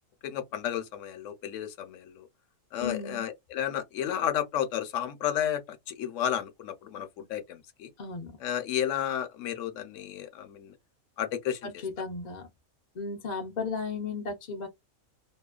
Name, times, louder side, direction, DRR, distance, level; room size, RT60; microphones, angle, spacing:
voice 1, 0.2-2.3 2.7-7.9 8.4-10.7 11.2-11.7, left 10 dB, 70° left, 0.9 m, -32 dB
voice 2, 2.8-3.2 8.0-8.4 11.6-12.5 13.0-14.7, left 4 dB, 50° left, 0.5 m, -35 dB
2.8 x 2.1 x 2.3 m
omnidirectional pair, 1.4 m